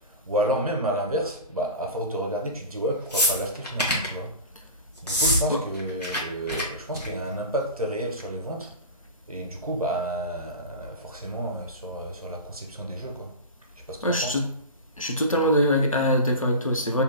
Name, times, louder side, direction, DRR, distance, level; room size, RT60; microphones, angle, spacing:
voice 1, 0.1-4.3 5.0-8.7 9.3-13.3 13.9-14.4, right 1 dB, 60° right, 0.5 m, -30 dB
sound 1, 3.1-4.1 5.0-5.4 5.7-6.2 6.5-6.6 6.9-7.2 8.2-8.3, equal, 75° left, 1.0 m, -24 dB
voice 2, 14.0-14.5 15.0-17.0, equal, 55° left, 0.4 m, -23 dB
2.7 x 2.0 x 2.5 m
figure-of-eight pair, 175°, 21 cm